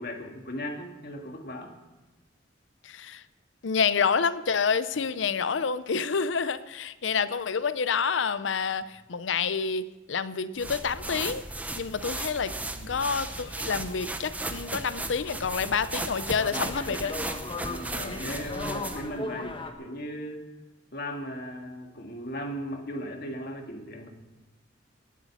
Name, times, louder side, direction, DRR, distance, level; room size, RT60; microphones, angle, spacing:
voice 1, 0.0-1.7 12.7-13.0 17.6-20.4 20.9-24.1, equal, 50° left, 3 dB, 2.0 m, -37 dB
voice 2, 2.8-3.2 3.6-11.4 11.8-12.5 12.8-17.1, left 5 dB, 70° left, 14 dB, 0.6 m, -28 dB
sound 1, 10.6-19.1, right 2 dB, 10° right, 0.8 m, -36 dB
sound 2, 13.3-19.7, left 2 dB, 25° left, 1.1 m, -39 dB
18.5 x 8.4 x 7.2 m, 1.1 s
head